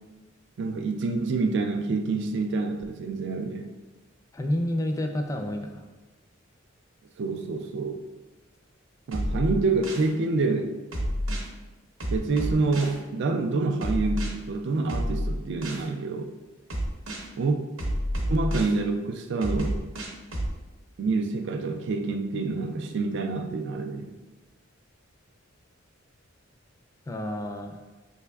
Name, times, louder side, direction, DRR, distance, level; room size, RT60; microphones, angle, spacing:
voice 1, 0.6-3.7 7.2-8.0 9.1-10.7 12.1-16.3 17.3-17.6 18.3-20.0 21.0-24.1, right 3 dB, 60° right, 6 dB, 0.3 m, -27 dB
voice 2, 4.3-5.9 27.1-27.8, left 1 dB, 15° left, 4 dB, 0.3 m, -29 dB
sound 1, 9.1-10.1 10.9-11.5 12.0-13.0 13.8-14.3 14.9-15.9 16.7-17.3 17.8-18.8 19.4-20.5, equal, 85° right, 0.9 m, -29 dB
5.4 x 3.4 x 2.3 m, 1.1 s
head